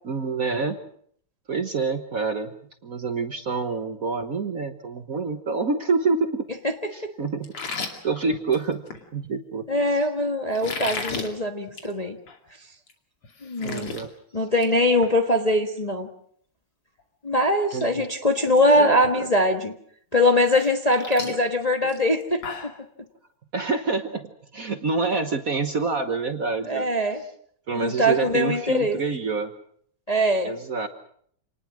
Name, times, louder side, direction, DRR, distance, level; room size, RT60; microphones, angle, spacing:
voice 1, 0.0-0.8 1.5-2.6 2.8-6.4 6.9-8.8 9.1-10.0 13.6-14.1 17.7-18.1 18.8-19.3 23.5-26.9 27.7-29.5 30.4-30.9, right 4 dB, 45° right, 8 dB, 1.4 m, -27 dB
sound 1, 7.4-9.0 10.5-11.3 11.7-11.9 12.3-12.4 12.9-13.0 13.2-14.0 14.4-14.7 15.0-15.2 17.0-17.1 17.6-17.8 18.1-18.6 19.0-19.1 20.5-22.8, left 4 dB, 80° left, 3.5 m, -34 dB
voice 2, 9.7-12.2 13.4-13.9 14.3-16.1 17.2-19.7 20.1-22.4 26.6-27.2 27.7-29.0 30.1-30.5, left 1 dB, 20° left, 4 dB, 1.3 m, -22 dB
27.5 x 19.5 x 6.3 m, 0.63 s
omnidirectional pair, 2.4 m